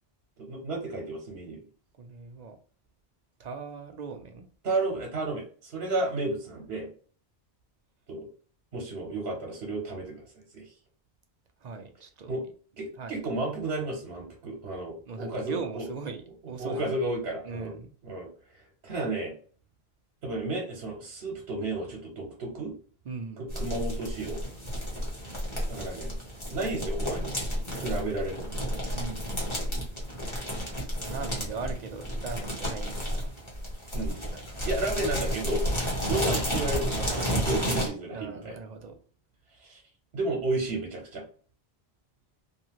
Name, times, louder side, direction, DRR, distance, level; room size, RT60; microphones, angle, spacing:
voice 1, 0.4-1.6 4.6-6.9 8.1-8.3 8.7-10.7 12.3-12.4 12.8-15.9 16.6-17.7 18.0-19.3 20.2-22.7 23.4-24.4 25.2-25.3 25.6-26.2 26.5-27.4 27.8-28.7 33.9-34.2 34.6-38.6 39.6-39.8 40.1-41.3, right 2 dB, 80° right, 1.1 m, -32 dB
voice 2, 2.0-2.6 3.4-5.0 11.6-12.4 12.9-13.3 15.1-17.2 17.4-17.9 23.0-23.5 28.9-29.5 30.9-33.3 33.9-34.7 38.1-39.0, right 5 dB, 55° right, 0.5 m, -40 dB
sound 1, 23.5-37.9, equal, 30° left, 1.1 m, -31 dB
2.8 x 2.4 x 2.8 m
omnidirectional pair, 1.1 m